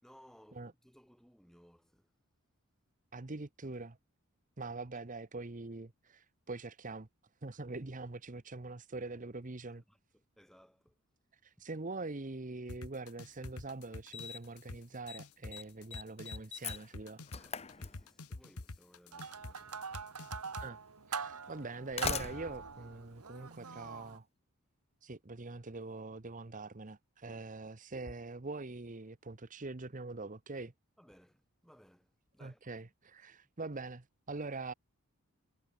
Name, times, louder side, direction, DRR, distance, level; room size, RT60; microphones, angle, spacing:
voice 1, 0.0-2.1 9.9-11.0 17.3-19.8 27.3-27.5 31.0-32.6, equal, ahead, 3.9 m, -62 dB
voice 2, 3.1-4.0 4.6-7.1 7.4-9.8 11.4-17.2 20.6-20.8 21.1-24.2 25.0-30.7 32.4-34.7, right 3 dB, 35° right, 1.0 m, -43 dB
sound 1, 12.7-20.7, left 2 dB, 85° left, 1.4 m, -46 dB
Slam, 13.3-13.4 14.1-14.6 14.9-15.2 15.5-18.4 19.6-19.7 20.5-20.6 21.6-23.9, left 6 dB, 30° left, 1.0 m, -42 dB
sound 2, 19.1-24.2, right 6 dB, 90° right, 1.5 m, -43 dB
head